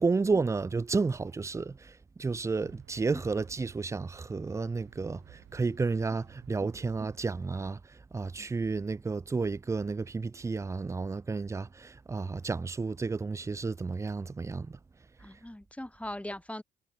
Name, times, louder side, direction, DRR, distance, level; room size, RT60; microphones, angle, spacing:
voice 1, 0.0-1.9 2.2-7.8 8.1-14.8, right 4 dB, 15° right, 0.3 m, -31 dB
sound 1, 2.6-7.7, right 15 dB, 90° right, 6.2 m, -56 dB
voice 2, 15.2-16.6, left 1 dB, 5° left, 1.7 m, -40 dB
cardioid pair, 90°, 20 cm